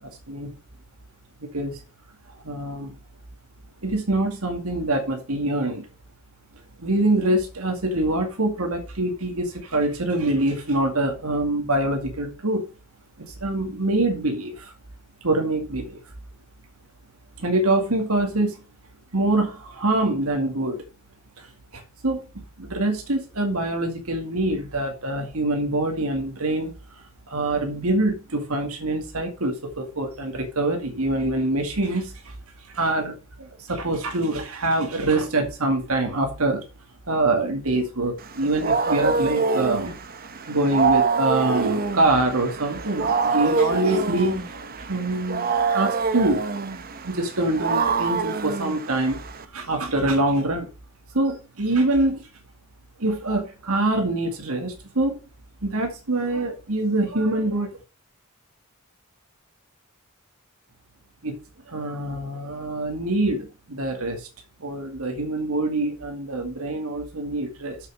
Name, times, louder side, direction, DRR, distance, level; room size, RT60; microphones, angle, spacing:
voice 1, 2.4-2.9 3.8-5.8 6.8-12.6 13.3-14.7 15.2-16.0 17.4-18.6 19.1-20.8 21.4-21.5 21.7-26.7 27.3-32.3 32.7-36.6 37.1-40.0 40.4-44.5 44.9-46.4 47.0-49.2 49.5-50.7 51.1-52.2 53.0-55.1 55.6-57.7 61.2-61.3 61.7-64.3 64.6-67.8, right 2 dB, 85° right, 2.1 m, -25 dB
Wild animals, 38.2-49.4, right 4 dB, 45° right, 1.0 m, -25 dB
7.4 x 6.7 x 6.4 m
head